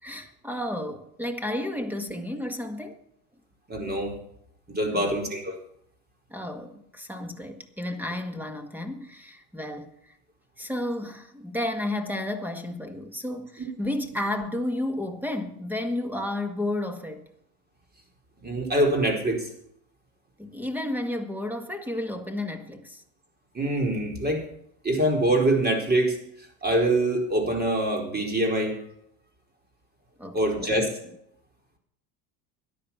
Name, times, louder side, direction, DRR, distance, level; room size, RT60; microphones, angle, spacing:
voice 1, 0.0-3.0 4.9-5.1 6.3-10.2 10.6-17.2 20.4-23.0 30.2-30.9, left 1 dB, 5° right, 1.8 m, -32 dB
voice 2, 3.7-4.2 4.7-5.6 13.6-13.7 18.4-19.5 23.5-24.4 24.8-26.2 26.6-28.8 30.3-31.0, right 1 dB, 20° right, 4.6 m, -24 dB
13.5 x 10.5 x 5.8 m
supercardioid pair, 100°, 46 cm